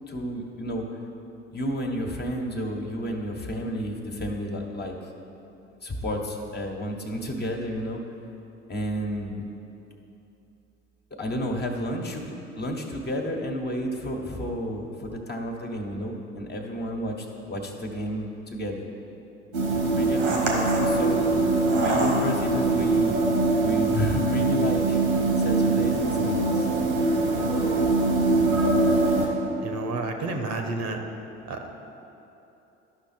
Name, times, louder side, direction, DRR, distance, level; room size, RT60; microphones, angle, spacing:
voice 1, 0.1-0.8 1.5-5.0 5.8-8.0 8.7-9.4 11.2-12.3 12.6-18.8 19.9-21.3 21.7-23.2 23.5-25.0 25.4-26.7, equal, 30° left, 1 dB, 1.4 m, -31 dB
sound 1, 19.5-29.3, right 2 dB, 85° right, 1.5 m, -23 dB
voice 2, 29.1-31.0 31.5-31.7, right 3 dB, 55° right, 4 dB, 1.1 m, -32 dB
11.5 x 5.8 x 4.4 m, 2.9 s
hypercardioid pair, 60°, 32 cm